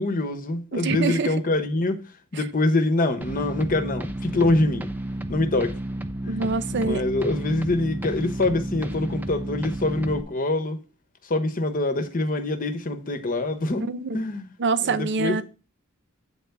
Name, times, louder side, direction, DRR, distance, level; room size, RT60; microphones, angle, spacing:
voice 1, 0.0-2.0 2.3-4.9 5.3-5.7 6.2-6.3 6.7-10.8 11.3-14.5 14.8-15.4, left 2 dB, 40° left, 1.0 m, -25 dB
voice 2, 0.7-1.3 6.3-7.1 13.9-14.2 14.6-15.4, right 4 dB, 55° right, 0.6 m, -25 dB
sound 1, 3.2-10.2, right 1 dB, 10° right, 0.5 m, -32 dB
8.6 x 3.5 x 6.7 m
head